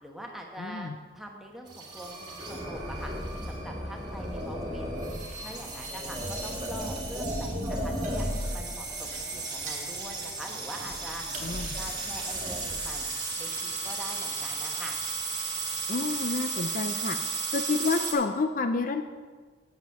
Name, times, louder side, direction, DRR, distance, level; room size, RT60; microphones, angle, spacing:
voice 1, 0.0-3.1 3.4-4.9 5.4-8.3 8.5-11.2 11.6-13.1 13.4-15.0, equal, ahead, 0 dB, 1.1 m, -43 dB
voice 2, 0.6-1.0 11.4-11.7 15.9-17.2 17.5-19.0, left 4 dB, 45° left, 7 dB, 0.4 m, -29 dB
sound 1, 1.7-18.1, right 2 dB, 25° right, 1.6 m, -34 dB
sound 2, 4.4-16.4, right 3 dB, 40° right, 1.5 m, -52 dB
8.9 x 7.0 x 5.7 m, 1.5 s
head